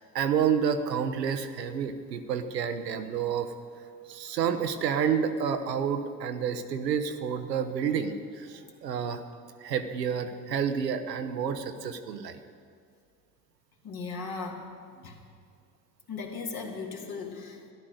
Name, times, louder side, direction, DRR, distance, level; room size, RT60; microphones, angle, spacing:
voice 1, 0.1-3.5 4.1-9.2 9.6-12.4 15.0-15.1, right 7 dB, 85° right, 8 dB, 0.8 m, -29 dB
voice 2, 13.8-14.7 15.0-15.2 16.1-17.7, left 4 dB, 50° left, 1 dB, 2.2 m, -37 dB
13.0 x 11.0 x 6.4 m, 2.2 s
figure-of-eight pair, 55°, 48 cm